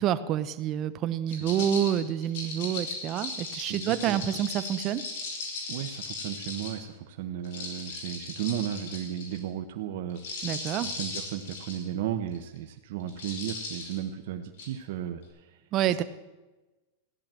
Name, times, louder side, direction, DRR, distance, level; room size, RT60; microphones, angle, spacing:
voice 1, 0.0-5.0 10.4-10.9 15.7-16.0, right 10 dB, 35° right, 12 dB, 0.8 m, -28 dB
sound 1, 1.3-6.8 7.4-9.4 10.1-11.8 12.3-12.6 13.1-14.0 14.6-14.7, left 3 dB, 65° left, 5.2 m, -37 dB
voice 2, 1.3-1.7 3.7-4.2 5.7-10.5 10.8-15.6 15.9-16.0, right 10 dB, 60° right, 4 dB, 1.0 m, -35 dB
15.5 x 10.5 x 7.6 m, 1.2 s
supercardioid pair, 150°, 0 cm